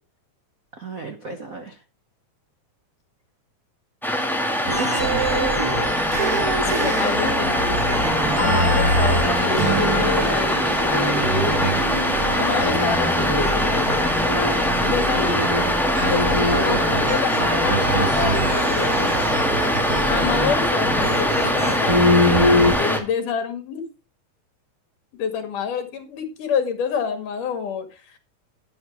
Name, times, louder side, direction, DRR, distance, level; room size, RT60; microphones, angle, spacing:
voice 1, 0.8-1.8 4.6-7.5, right 3 dB, 65° right, 6 dB, 0.8 m, -31 dB
sound 1, 4.0-23.0, equal, ahead, 1.3 m, -22 dB
sound 2, 4.7-22.8, equal, 35° right, 6.3 m, -24 dB
voice 2, 6.6-11.8 12.2-15.4 16.0-19.5 20.0-23.9 25.1-28.2, left 6 dB, 80° left, 8 dB, 3.6 m, -28 dB
Acoustic guitar, 9.5-13.5, right 5 dB, 85° right, 5.2 m, -31 dB
11.0 x 10.5 x 3.5 m, 0.30 s
omnidirectional pair, 3.6 m